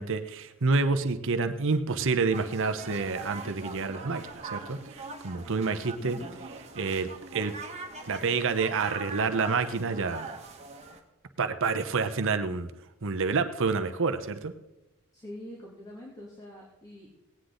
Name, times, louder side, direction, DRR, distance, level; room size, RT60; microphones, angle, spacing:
voice 1, 0.0-6.2 6.8-7.5 8.1-10.3 11.4-12.7 13.0-14.5, right 4 dB, 60° right, 8 dB, 0.9 m, -28 dB
sound 1, 2.3-11.0, right 3 dB, 30° right, 1.7 m, -42 dB
voice 2, 6.0-6.3 15.1-17.1, left 1 dB, 15° left, -4 dB, 2.8 m, -44 dB
17.5 x 9.9 x 3.9 m, 0.98 s
head